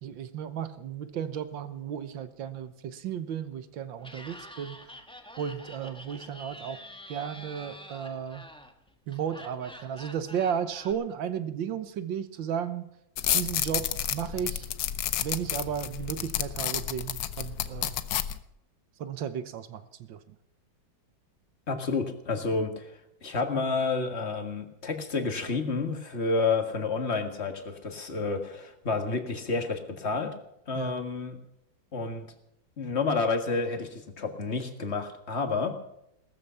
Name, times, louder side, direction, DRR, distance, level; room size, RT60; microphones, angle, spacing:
voice 1, 0.0-4.8 5.4-6.8 7.1-8.5 9.1-12.9 13.3-14.7 15.2-18.0 19.0-20.2 30.8-31.0, right 8 dB, 80° right, 12 dB, 1.8 m, -34 dB
Laughter, 4.0-10.9, equal, 5° left, 1.1 m, -47 dB
sound 1, 13.2-18.4, left 10 dB, 60° left, 1.1 m, -31 dB
voice 2, 21.7-30.3 30.7-31.4 31.9-32.3 32.8-35.7, left 4 dB, 35° left, 6 dB, 2.0 m, -30 dB
18.0 x 14.0 x 5.8 m, 0.78 s
omnidirectional pair, 2.1 m